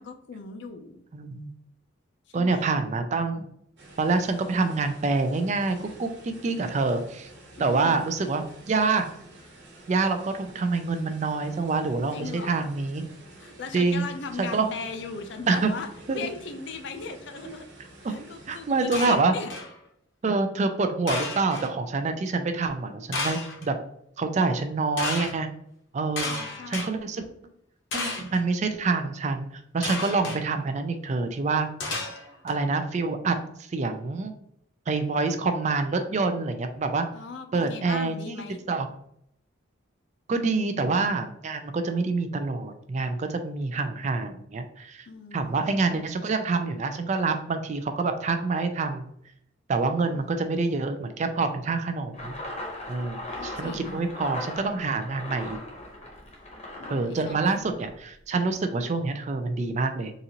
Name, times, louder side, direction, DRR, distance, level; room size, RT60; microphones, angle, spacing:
voice 1, 0.0-1.0 2.3-2.7 7.6-8.0 12.1-12.7 13.4-17.6 18.0-19.5 26.2-27.1 37.1-38.6 45.1-46.1 50.0-50.5 53.4-54.1 56.8-57.5, left 4 dB, 60° left, 6 dB, 0.4 m, -39 dB
voice 2, 1.1-1.5 2.3-3.4 4.0-7.3 7.6-9.0 9.9-13.1 13.7-14.1 14.4-14.7 15.5-15.7 16.1-16.2 18.0-19.3 20.2-23.8 24.2-25.5 25.9-26.3 26.7-27.3 27.9-29.5 29.7-31.7 32.4-33.4 33.7-34.3 34.9-37.1 37.5-38.2 38.7-38.9 40.3-45.1 45.3-49.1 49.7-52.4 52.9-55.6 56.9-60.1, right 3 dB, 35° right, 8 dB, 0.3 m, -26 dB
Rushing water, 3.8-19.2, right 2 dB, 60° right, 1.1 m, -49 dB
sound 1, 18.9-19.7 21.1-21.7 23.1-23.7 25.0-25.3 26.2-26.9 27.9-28.4 29.8-30.4 31.8-32.5, left 3 dB, 75° left, 0.8 m, -32 dB
sound 2, 52.1-58.0, left 1 dB, 35° left, 0.8 m, -39 dB
4.0 x 2.5 x 2.8 m, 0.73 s
head